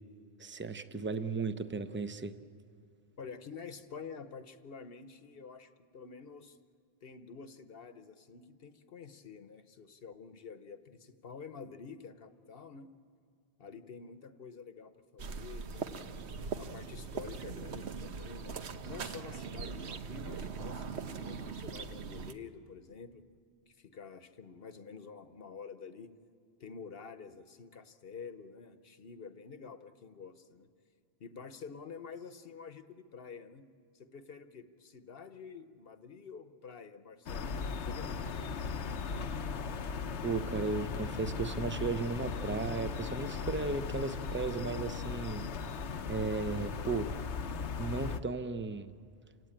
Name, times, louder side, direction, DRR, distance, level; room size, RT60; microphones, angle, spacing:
voice 1, 0.4-2.4 40.2-45.4 46.1-47.1 47.8-48.9, right 4 dB, 15° right, 10 dB, 0.6 m, -35 dB
voice 2, 3.2-6.6 7.0-12.9 13.6-16.2 16.6-18.6 18.8-23.2 23.7-26.1 26.6-30.7 31.2-33.6 33.9-38.4, left 5 dB, 60° left, 10 dB, 1.1 m, -49 dB
sound 1, 15.2-22.3, right 5 dB, 80° right, 1.2 m, -41 dB
sound 2, 37.3-48.2, left 5 dB, 90° left, 1.1 m, -37 dB
28.5 x 17.0 x 8.9 m, 2.3 s
omnidirectional pair, 1.1 m